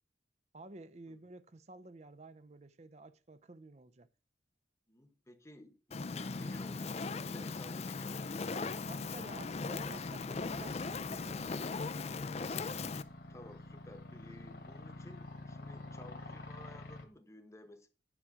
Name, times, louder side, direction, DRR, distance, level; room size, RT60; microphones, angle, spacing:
voice 1, 0.5-4.1 8.9-11.9, right 2 dB, 35° right, 0.6 m, -52 dB
voice 2, 4.9-8.7 13.3-17.9, left 1 dB, 15° left, 1.0 m, -55 dB
Fire, 5.9-13.0, left 4 dB, 35° left, 0.4 m, -38 dB
sound 1, 8.1-17.0, left 2 dB, 55° left, 1.5 m, -50 dB
10.0 x 4.9 x 6.3 m
head